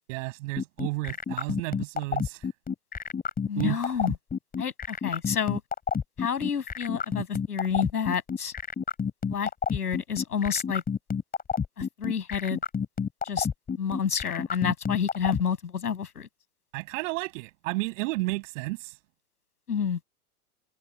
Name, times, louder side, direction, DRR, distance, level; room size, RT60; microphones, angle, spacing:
voice 1, 0.1-2.5 3.6-4.0 16.7-19.0, right 23 dB, 55° right, 7.4 m, -32 dB
sound 1, 0.6-15.4, left 6 dB, 20° left, 6.2 m, -29 dB
voice 2, 3.5-4.2 4.6-5.6 6.2-8.5 9.3-10.8 11.8-12.6 13.2-13.5 13.8-16.3 19.7-20.0, left 7 dB, 85° left, 7.4 m, -29 dB
hypercardioid pair, 105°, 45 cm